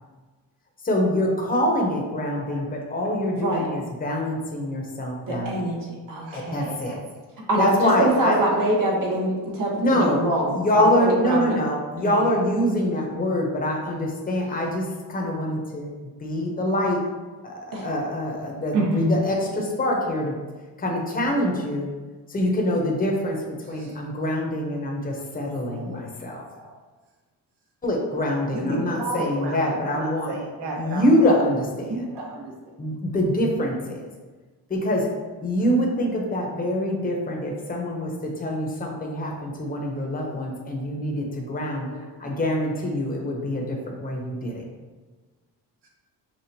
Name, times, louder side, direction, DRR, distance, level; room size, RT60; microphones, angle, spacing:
voice 1, 0.8-5.5 6.3-7.0 7.6-8.4 9.8-10.2 10.5-15.9 16.2-17.0 17.4-20.4 20.8-21.9 22.3-23.4 23.7-26.4 27.8-30.3 30.7-32.0 32.8-34.1 34.7-35.1 35.4-41.9 42.2-44.6, left 1 dB, 20° left, -1 dB, 0.9 m, -25 dB
voice 2, 2.2-2.9 6.8-7.0 8.2-8.6 18.7-19.2 25.7-26.0 26.6-26.7 28.5-31.3 31.9-32.4 41.9-42.0, right 1 dB, 80° right, -1 dB, 1.1 m, -29 dB
voice 3, 3.3-3.7 5.3-5.8 6.1-6.8 7.5-11.7 12.0-12.1 17.7-17.8 28.6-28.9, right 1 dB, 55° right, -2 dB, 1.3 m, -25 dB
5.8 x 2.4 x 2.8 m, 1.3 s
cardioid pair, 80°, 40 cm